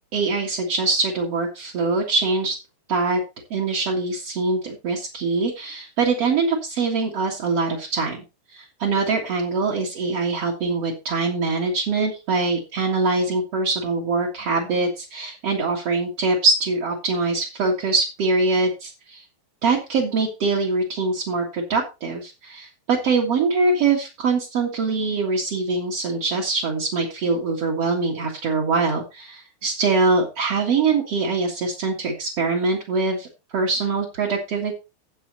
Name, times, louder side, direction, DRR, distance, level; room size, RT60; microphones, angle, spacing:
voice 1, 0.1-2.6 2.9-3.2 3.5-8.2 8.5-19.2 19.6-33.3 33.5-34.7, right 3 dB, 50° right, -3 dB, 1.9 m, -23 dB
11.5 x 8.2 x 4.0 m, 0.28 s
omnidirectional pair, 5.5 m